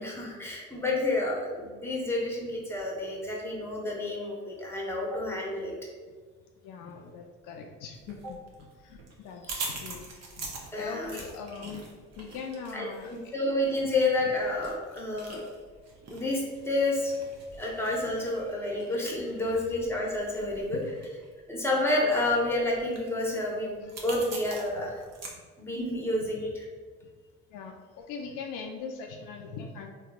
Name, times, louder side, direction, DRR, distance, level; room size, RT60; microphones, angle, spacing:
voice 1, 0.0-5.7 8.2-8.3 10.7-11.2 12.7-15.4 16.1-17.1 17.6-20.8 21.5-25.0 25.6-26.7, left 2 dB, 5° left, -2 dB, 0.9 m, -29 dB
voice 2, 6.6-8.4 8.8-10.5 10.8-11.8 12.2-13.1 20.4-20.8 27.5-29.9, left 5 dB, 65° left, 2 dB, 0.4 m, -41 dB
sound 1, 8.0-25.3, right 3 dB, 50° right, 0.8 m, -44 dB
3.3 x 2.8 x 2.3 m, 1.5 s
hypercardioid pair, 60°, 33 cm